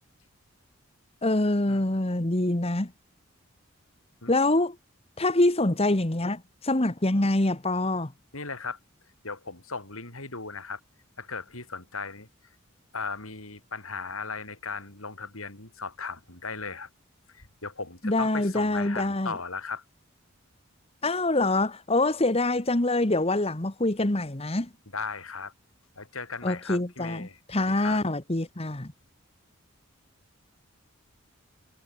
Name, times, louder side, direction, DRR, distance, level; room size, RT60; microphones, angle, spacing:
voice 1, 1.2-2.9 4.3-4.7 5.2-8.1 18.0-19.3 21.0-24.7 26.4-28.9, left 2 dB, 30° left, 1.4 m, -25 dB
voice 2, 8.3-8.8 9.2-10.8 11.2-12.3 12.9-16.9 17.3-19.8 24.9-25.5 26.0-28.0, left 4 dB, 85° left, 6.2 m, -37 dB
head